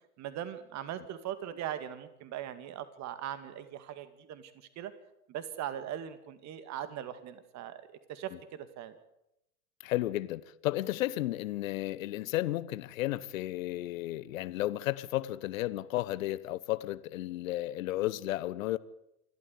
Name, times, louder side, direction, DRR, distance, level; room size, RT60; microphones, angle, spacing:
voice 1, 0.2-4.9 5.3-9.0, right 10 dB, 40° right, 2.1 m, -40 dB
voice 2, 9.8-18.8, left 15 dB, 60° left, 1.1 m, -33 dB
28.0 x 12.5 x 8.3 m
hypercardioid pair, 95°, 45 cm